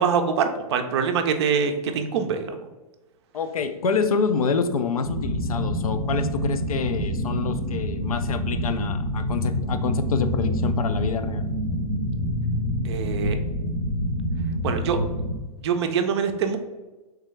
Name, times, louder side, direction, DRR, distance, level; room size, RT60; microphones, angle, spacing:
voice 1, 0.0-2.6 12.8-13.4 14.6-15.0 15.6-16.6, right 6 dB, 45° right, 7 dB, 0.5 m, -24 dB
voice 2, 3.3-11.5, left 5 dB, 65° left, 9 dB, 0.4 m, -27 dB
sound 1, 5.0-15.4, equal, 50° left, 0.8 m, -27 dB
3.6 x 3.4 x 3.2 m, 1.1 s
figure-of-eight pair, 105°, 20 cm